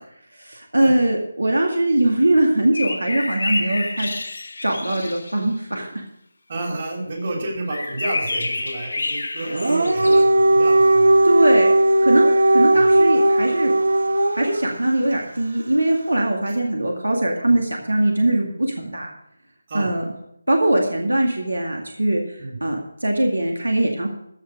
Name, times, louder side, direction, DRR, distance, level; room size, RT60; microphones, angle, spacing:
voice 1, 0.4-4.1 4.6-6.0 11.2-11.7 12.0-13.7 14.3-19.1 19.7-20.0 20.5-24.1, right 1 dB, 90° right, 1 dB, 2.1 m, -21 dB
sound 1, 2.7-5.4 7.7-10.2, left 2 dB, 70° left, 1.5 m, -29 dB
voice 2, 6.5-11.1 12.7-12.9 17.5-17.6 19.7-19.9 22.4-22.6, right 2 dB, 45° right, 0 dB, 3.7 m, -30 dB
Dog, 9.4-14.6, right 1 dB, 65° right, 1.0 m, -16 dB
14.5 x 5.6 x 6.4 m, 0.77 s
figure-of-eight pair, 160°, 0 cm